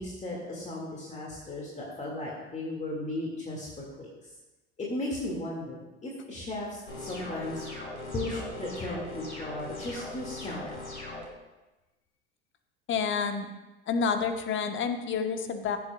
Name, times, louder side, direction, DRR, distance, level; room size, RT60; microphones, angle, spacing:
voice 1, 0.0-4.1 4.8-7.6 8.1-10.8, left 1 dB, 20° left, -3 dB, 2.1 m, -36 dB
sound 1, 6.9-11.3, left 2 dB, 90° left, 1.8 m, -40 dB
voice 2, 12.9-13.5 13.9-15.8, left 6 dB, 35° left, 7 dB, 1.1 m, -29 dB
15.5 x 8.2 x 2.3 m, 1.1 s
figure-of-eight pair, 70°, 33 cm